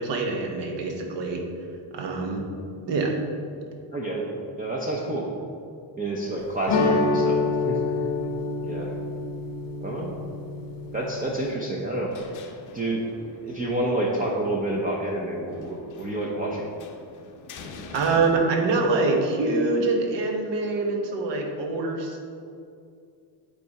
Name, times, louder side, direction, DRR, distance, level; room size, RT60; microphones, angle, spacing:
voice 1, 0.0-1.4 1.9-2.4 2.9-3.2 17.9-22.2, right 3 dB, 60° right, 2 dB, 1.3 m, -25 dB
voice 2, 3.9-4.3 4.6-5.3 6.0-7.4 7.6-7.8 8.6-8.9 9.8-10.1 10.9-12.1 12.7-13.0 13.4-16.7, right 1 dB, 20° right, -3 dB, 0.6 m, -28 dB
sound 1, 6.7-11.5, left 3 dB, 70° left, 1.0 m, -27 dB
sound 2, 11.8-19.1, left 3 dB, 40° left, 0.8 m, -46 dB
8.4 x 4.2 x 4.8 m, 2.4 s
cardioid pair, 140°, 48 cm